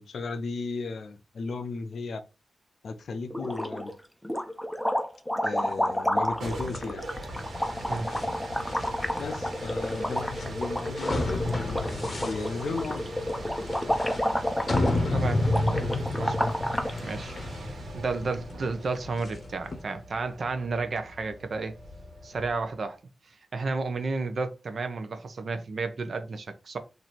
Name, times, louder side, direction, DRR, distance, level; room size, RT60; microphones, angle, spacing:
voice 1, 0.0-2.2 2.8-3.9 5.4-7.1 9.2-13.0 15.0-15.2, left 4 dB, 80° left, 0.6 m, -35 dB
sound 1, 3.3-3.9 4.2-17.0, equal, 5° left, 0.5 m, -30 dB
sound 2, 6.1-22.8, right 1 dB, 85° right, 1.4 m, -41 dB
sound 3, 6.6-19.8, left 2 dB, 45° left, 0.7 m, -32 dB
voice 2, 14.3-14.7 15.1-15.4 16.2-16.5 17.0-21.7 22.2-23.0 23.3-26.8, right 3 dB, 55° right, 0.7 m, -32 dB
3.0 x 2.7 x 4.2 m
wide cardioid pair, 140°, 0 cm